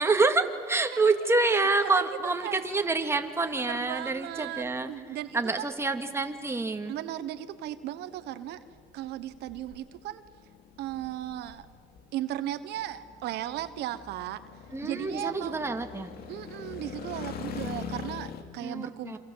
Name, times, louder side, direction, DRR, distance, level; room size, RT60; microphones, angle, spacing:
voice 1, 0.0-4.9 5.3-6.9 14.7-16.1 18.6-19.2, right 3 dB, 15° right, 5 dB, 2.4 m, -27 dB
sound 1, 2.3-18.4, left 7 dB, 65° left, 2.6 m, -44 dB
voice 2, 3.7-5.7 6.9-8.6 8.9-10.2 10.8-11.7 12.1-14.4 14.8-15.6 16.3-19.2, right 13 dB, 80° right, 11 dB, 1.2 m, -36 dB
28.0 x 26.5 x 8.0 m, 2.1 s
cardioid pair, 110°, 17 cm